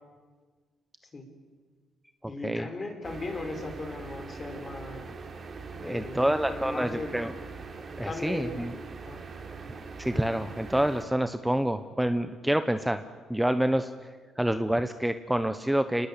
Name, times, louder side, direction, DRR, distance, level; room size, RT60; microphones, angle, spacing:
voice 1, 2.2-5.1 5.8-7.1 8.0-8.6 9.0-9.2, left 2 dB, 35° left, 6 dB, 4.9 m, -37 dB
sound 1, 3.0-11.1, right 4 dB, 45° right, 3.7 m, -42 dB
voice 2, 5.8-7.3 8.0-8.7 10.0-13.0 13.3-13.9 14.4-16.1, right 1 dB, 5° right, 10 dB, 1.1 m, -27 dB
29.0 x 20.5 x 8.6 m, 1.5 s
cardioid pair, 90°, 0 cm